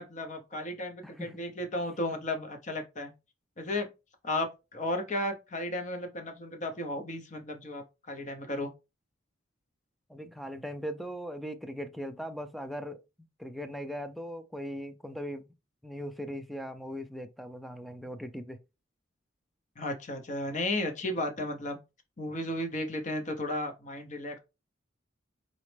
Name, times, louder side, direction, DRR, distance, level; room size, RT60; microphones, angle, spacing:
voice 1, 0.0-3.1 3.6-3.9 4.2-8.7 19.8-21.8 22.2-24.4, left 1 dB, 40° left, 0.8 m, -34 dB
voice 2, 1.0-1.4 10.1-13.0 13.4-15.5 15.8-18.6, equal, ahead, 0.3 m, -39 dB
4.0 x 3.0 x 3.3 m
head